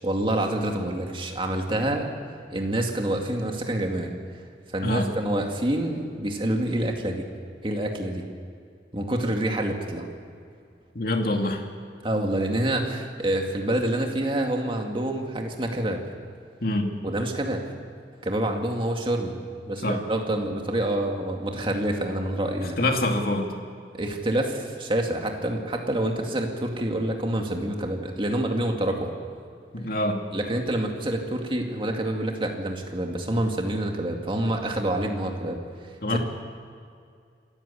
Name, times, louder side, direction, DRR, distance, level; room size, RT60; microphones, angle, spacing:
voice 1, 0.0-2.1 2.5-4.1 4.7-7.3 7.6-8.3 8.9-10.1 12.0-16.0 17.0-17.6 18.2-19.3 19.7-22.8 23.9-29.1 30.3-36.2, right 1 dB, 30° right, 2 dB, 2.3 m, -27 dB
voice 2, 10.9-11.6 16.6-16.9 19.8-20.0 22.8-23.5 29.7-30.2 36.0-36.2, left 1 dB, 55° left, 3 dB, 2.4 m, -25 dB
26.5 x 14.0 x 8.4 m, 2.3 s
head